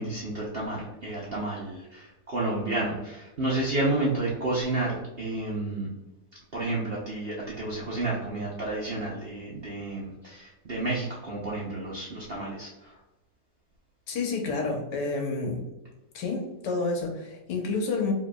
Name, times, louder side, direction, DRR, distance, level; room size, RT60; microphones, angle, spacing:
voice 1, 0.0-5.9 6.5-13.0, right 2 dB, 50° right, -5 dB, 0.7 m, -31 dB
voice 2, 14.1-15.7 16.1-18.1, left 3 dB, 75° left, 2 dB, 1.5 m, -29 dB
5.0 x 3.4 x 2.3 m, 1.0 s
omnidirectional pair, 1.9 m